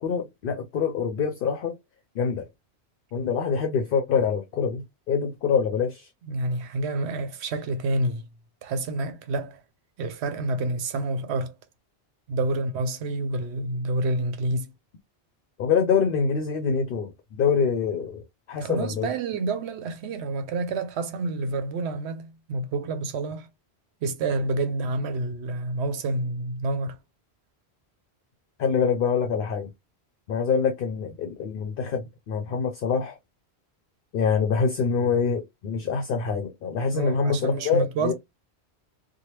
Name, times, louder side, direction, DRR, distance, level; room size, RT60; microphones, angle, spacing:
voice 1, 0.0-1.8 2.1-2.5 3.1-6.1 15.6-19.1 28.6-29.7 30.3-33.2 34.1-38.1, left 6 dB, 60° left, 0.7 m, -25 dB
voice 2, 6.3-8.3 8.6-9.6 10.0-11.6 12.3-14.7 18.6-23.5 24.0-27.0 36.9-38.1, right 2 dB, 80° right, 0.8 m, -28 dB
3.2 x 2.2 x 2.9 m
omnidirectional pair, 1.1 m